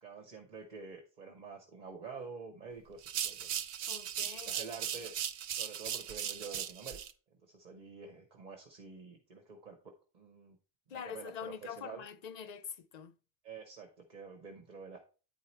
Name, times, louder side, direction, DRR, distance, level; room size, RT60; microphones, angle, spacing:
voice 1, 0.0-3.5 4.2-5.1 5.5-7.0 7.5-9.8 10.1-10.6 10.9-12.0 13.4-15.0, right 5 dB, 45° right, 1.1 m, -48 dB
sound 1, 3.0-7.1, right 9 dB, 90° right, 0.9 m, -38 dB
voice 2, 3.9-5.1 10.9-13.1, left 7 dB, 55° left, 0.5 m, -45 dB
9.3 x 4.7 x 4.3 m
omnidirectional pair, 1.1 m